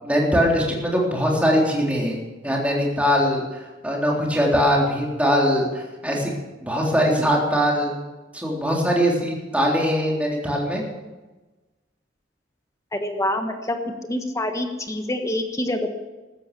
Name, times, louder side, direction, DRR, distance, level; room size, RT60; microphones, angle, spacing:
voice 1, 0.0-6.3 6.6-7.9 8.3-10.8, equal, 5° right, -2 dB, 3.7 m, -21 dB
voice 2, 12.9-13.8 14.0-15.9, left 1 dB, 15° left, 5 dB, 1.4 m, -26 dB
14.5 x 13.5 x 6.9 m, 1.2 s
head